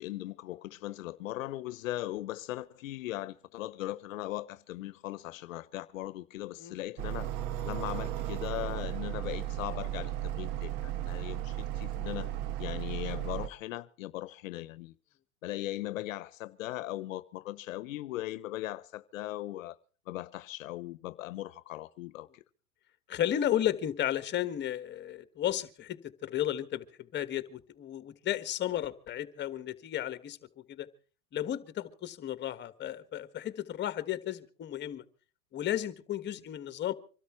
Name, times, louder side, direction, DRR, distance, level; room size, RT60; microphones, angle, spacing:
voice 1, 0.0-7.3 7.6-12.3 12.6-14.9 15.4-19.8 20.1-22.4, left 15 dB, 75° left, 0.9 m, -39 dB
sound 1, 7.0-13.5, right 12 dB, 50° right, 1.4 m, -35 dB
voice 2, 23.1-26.8 27.1-30.4 30.7-30.9 31.3-35.0 35.5-36.9, left 11 dB, 25° left, 1.6 m, -33 dB
25.0 x 13.0 x 4.5 m
hypercardioid pair, 125°, 40 cm